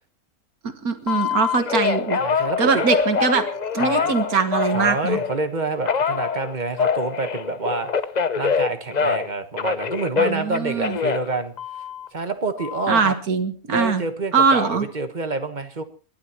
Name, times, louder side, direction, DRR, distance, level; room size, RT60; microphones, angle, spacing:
voice 1, 0.8-2.2 2.6-3.5 3.7-5.2 10.2-11.0 12.9-14.0 14.3-14.9, right 5 dB, 75° right, 8 dB, 2.0 m, -21 dB
Telephone, 1.1-5.4 5.9-9.3 9.6-12.1 12.6-13.1, left 6 dB, 40° left, 0.7 m, -25 dB
voice 2, 2.2-2.9 3.8-4.1 4.7-7.9 8.3-11.5 12.1-13.2 13.7-15.8, right 3 dB, 30° right, 8 dB, 1.4 m, -27 dB
29.5 x 11.5 x 3.0 m, 0.36 s
omnidirectional pair, 1.6 m